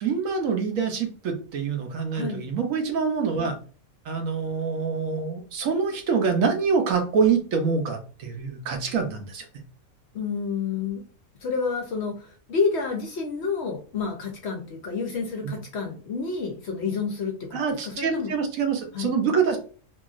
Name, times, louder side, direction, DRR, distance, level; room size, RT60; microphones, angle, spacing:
voice 1, 0.0-3.5 4.1-9.4 15.4-15.5 17.5-19.6, right 5 dB, 70° right, 5 dB, 1.0 m, -25 dB
voice 2, 2.1-2.5 10.1-11.0 11.4-18.3 18.9-19.1, left 5 dB, 60° left, 2 dB, 0.8 m, -29 dB
2.9 x 2.5 x 2.4 m, 0.40 s
omnidirectional pair, 1.5 m